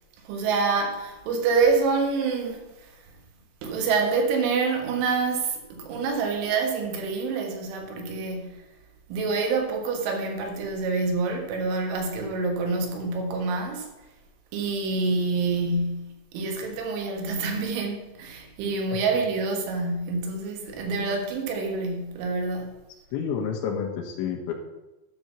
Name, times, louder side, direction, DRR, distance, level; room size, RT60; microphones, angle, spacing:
voice 1, 0.3-2.6 3.6-8.6 9.1-13.9 14.5-22.7, right 4 dB, 85° right, 4.0 m, -27 dB
voice 2, 23.1-24.5, left 7 dB, 80° left, 3.6 m, -29 dB
12.0 x 4.5 x 6.8 m
omnidirectional pair, 5.4 m